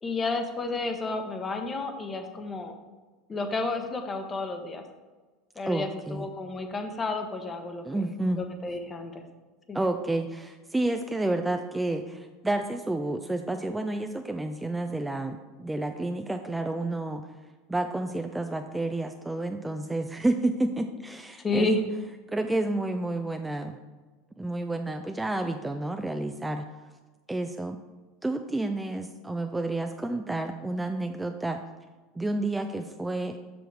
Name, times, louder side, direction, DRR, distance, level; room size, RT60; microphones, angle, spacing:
voice 1, 0.0-2.7 3.3-4.8 5.6-8.0 8.4-9.2 9.7-9.8 21.4-21.8, left 2 dB, 25° left, 6 dB, 1.0 m, -31 dB
voice 2, 5.7-6.3 7.8-8.4 9.7-17.3 17.7-21.8 22.3-23.8 24.4-26.7 27.3-27.8 28.2-31.6 32.2-33.4, right 2 dB, 10° right, 6 dB, 0.4 m, -30 dB
6.9 x 6.1 x 3.4 m, 1.3 s
hypercardioid pair, 90°, 0 cm